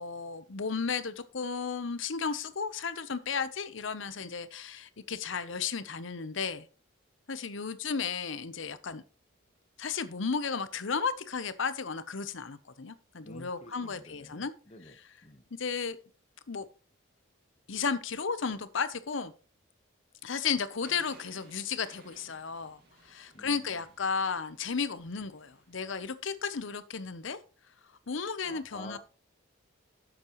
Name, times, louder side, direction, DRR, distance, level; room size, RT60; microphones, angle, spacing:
voice 1, 0.0-6.7 7.3-9.0 9.8-14.5 14.9-15.0 15.5-16.0 16.5-16.7 17.7-19.3 20.2-27.4 28.1-29.0, left 5 dB, 65° left, 14 dB, 0.7 m, -34 dB
voice 2, 13.2-15.0 15.2-15.4 23.3-23.7 28.4-29.0, left 1 dB, 30° left, 8 dB, 1.1 m, -49 dB
sound 1, 20.8-25.9, right 2 dB, 50° right, 2.2 m, -59 dB
10.5 x 7.3 x 3.0 m, 0.36 s
head